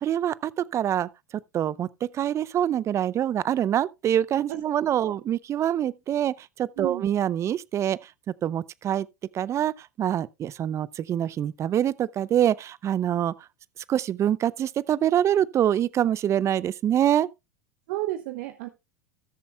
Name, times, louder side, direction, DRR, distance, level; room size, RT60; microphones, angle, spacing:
voice 1, 0.0-1.1 1.5-8.0 8.4-9.1 9.3-13.3 13.9-17.3, right 10 dB, 35° right, 0.5 m, -25 dB
voice 2, 17.9-18.7, right 16 dB, 65° right, 0.9 m, -32 dB
17.5 x 7.0 x 2.2 m
hypercardioid pair, 90°, 9 cm